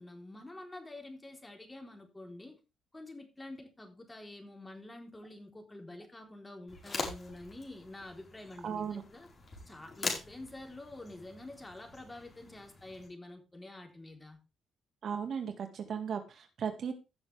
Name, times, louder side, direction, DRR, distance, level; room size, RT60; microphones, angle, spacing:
voice 1, 0.0-2.6 2.9-9.3 9.7-14.4, left 2 dB, 15° left, 3.8 m, -48 dB
sound 1, 6.7-13.1, left 3 dB, 35° left, 4.8 m, -43 dB
voice 2, 8.6-9.0 15.0-16.9, right 7 dB, 60° right, 2.0 m, -36 dB
16.0 x 6.7 x 3.5 m
cardioid pair, 90°, 0 cm